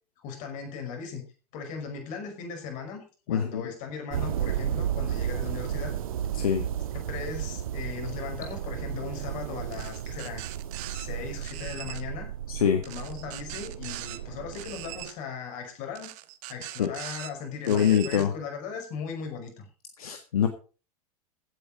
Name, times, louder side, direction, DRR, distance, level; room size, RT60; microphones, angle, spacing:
voice 1, 0.2-1.2 1.5-5.9 6.3-6.5 7.1-10.4 10.9-12.3 12.9-16.1 16.5-19.7, left 6 dB, 40° left, 4 dB, 5.5 m, -38 dB
voice 2, 3.3-3.6 6.3-6.7 12.5-12.8 16.8-16.9 17.7-18.3 20.0-20.5, left 8 dB, 65° left, 6 dB, 1.8 m, -24 dB
sound 1, 4.1-15.1, right 10 dB, 60° right, 1.5 m, -33 dB
sound 2, 9.7-11.1 11.4-12.0 12.8-14.2 14.5-15.1 16.0-17.3 17.6-18.3, right 17 dB, 40° right, 1.2 m, -41 dB
16.0 x 9.0 x 5.3 m, 0.37 s
figure-of-eight pair, 90°, 20 cm